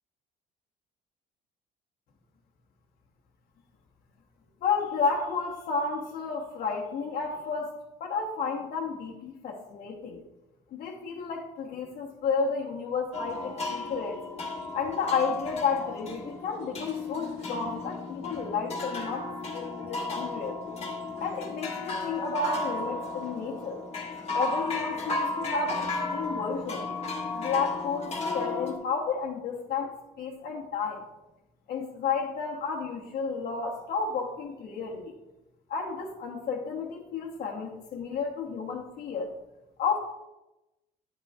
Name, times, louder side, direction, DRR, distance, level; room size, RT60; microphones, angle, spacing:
voice 1, 4.6-10.2 10.7-14.2 14.7-19.3 19.5-20.6 21.2-23.8 24.3-26.9 27.3-31.0 31.7-35.1 35.7-39.3 39.8-40.0, left 5 dB, 60° left, -4 dB, 1.1 m, -32 dB
sound 1, 13.1-28.8, left 3 dB, 35° left, 1.5 m, -34 dB
10.0 x 7.7 x 2.4 m, 0.97 s
cardioid pair, 110°, 17 cm